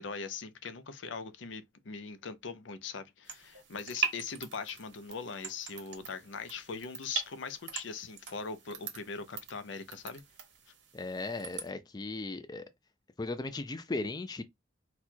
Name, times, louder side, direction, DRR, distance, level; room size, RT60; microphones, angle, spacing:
voice 1, 0.0-10.2, left 5 dB, 80° left, 0.6 m, -41 dB
sound 1, 3.3-11.7, right 6 dB, 75° right, 1.1 m, -41 dB
voice 2, 10.9-12.6 13.2-14.4, left 3 dB, 20° left, 0.4 m, -37 dB
4.2 x 2.3 x 4.4 m
head